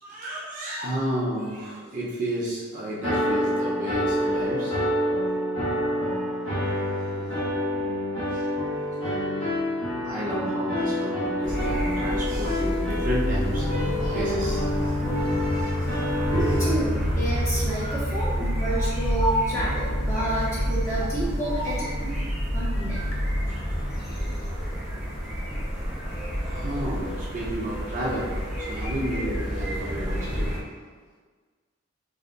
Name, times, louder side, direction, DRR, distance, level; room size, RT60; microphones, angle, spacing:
voice 1, 0.0-4.8 5.1-5.2 5.6-5.8 6.9-7.7 8.3-8.5 8.9-9.4 10.0-16.3 17.8-18.0 18.8-18.9 21.0-21.1 21.4-21.9 23.5-23.6 26.5-30.8, equal, 40° right, -7 dB, 0.7 m, -33 dB
sound 1, 3.0-16.7, equal, 90° left, 1.4 m, -27 dB
sound 2, 11.4-30.6, equal, ahead, 0.8 m, -29 dB
sound 3, 13.6-24.1, left 2 dB, 70° left, 0.7 m, -36 dB
voice 2, 16.3-23.0, right 1 dB, 15° left, -10 dB, 1.3 m, -29 dB
4.1 x 3.3 x 2.5 m, 1.5 s
head